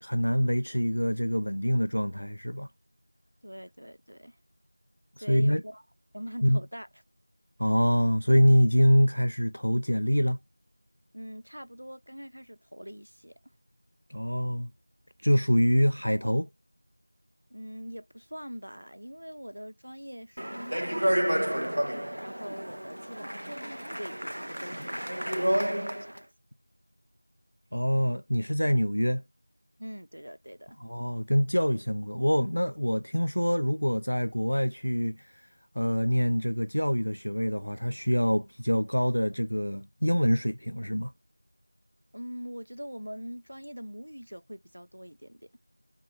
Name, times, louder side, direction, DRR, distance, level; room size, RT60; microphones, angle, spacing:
voice 1, 0.0-2.7 5.2-5.6 6.4-6.6 7.6-10.4 14.1-14.7 15.2-16.5 27.7-29.2 30.8-35.3 35.8-41.1, equal, 80° left, 0.3 m, -25 dB
voice 2, 3.4-4.4 5.2-5.8 6.1-6.9 11.1-13.4 17.5-23.5 23.9-26.3 29.8-30.8 42.1-45.5, equal, 85° right, 0.6 m, -43 dB
Speech, 20.4-26.2, equal, 50° right, 0.3 m, -30 dB
3.7 x 2.7 x 4.2 m
figure-of-eight pair, 180°, 0 cm